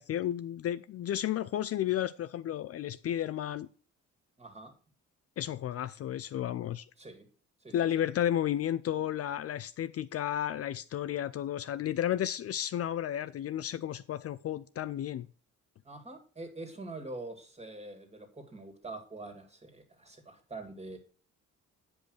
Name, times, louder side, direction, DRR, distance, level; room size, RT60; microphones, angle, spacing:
voice 1, 0.0-3.7 5.4-6.9 7.7-15.3, left 11 dB, 55° left, 0.4 m, -32 dB
voice 2, 4.4-4.7 7.0-7.2 7.6-8.0 15.9-21.0, right 2 dB, 20° right, 2.2 m, -45 dB
8.6 x 5.3 x 6.3 m
cardioid pair, 90°, 30 cm